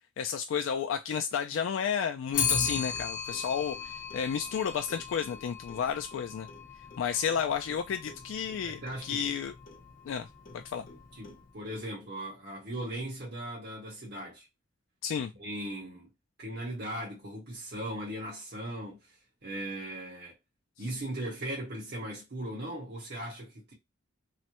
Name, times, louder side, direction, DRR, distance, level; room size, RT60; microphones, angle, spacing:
voice 1, 0.2-6.5 7.0-9.5 10.1-10.3 10.5-10.9 15.0-15.3, left 7 dB, 80° left, 0.3 m, -32 dB
Clock, 2.3-11.7, left 6 dB, 45° left, 0.8 m, -37 dB
voice 2, 8.6-9.3 11.1-14.5 15.3-16.1 16.4-19.2 19.4-20.3 20.8-23.7, right 1 dB, 60° right, 1.3 m, -38 dB
3.1 x 2.0 x 2.9 m
head